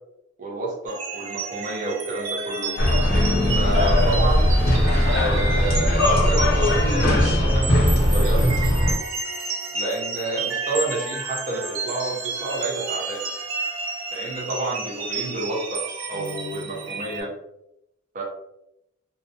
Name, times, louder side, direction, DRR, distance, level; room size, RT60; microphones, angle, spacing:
voice 1, 0.4-2.7 3.5-4.5 5.1-8.5 9.7-13.3 14.1-15.8 16.1-17.3 18.1-18.2, right 2 dB, 40° right, -3 dB, 0.7 m, -29 dB
sound 1, 0.9-17.2, right 3 dB, 80° right, 0.6 m, -31 dB
sound 2, 2.8-8.9, left 1 dB, 50° left, 0.7 m, -19 dB
2.4 x 2.1 x 2.7 m, 0.83 s
head